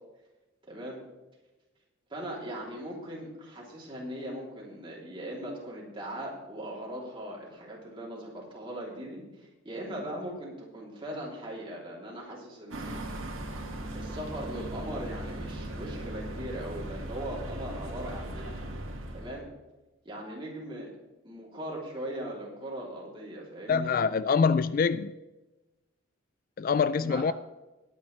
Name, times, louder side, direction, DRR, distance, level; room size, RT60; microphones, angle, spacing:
voice 1, 0.7-1.0 2.1-13.0 13.9-18.5 19.1-19.5 20.0-20.9 21.2-23.9 27.0-27.2, right 1 dB, 25° right, 3.1 m, -39 dB
sound 1, 12.7-19.4, right 1 dB, 85° right, 1.9 m, -38 dB
voice 2, 23.7-25.1 26.6-27.3, left 5 dB, 45° left, 0.3 m, -25 dB
20.0 x 9.1 x 3.3 m
head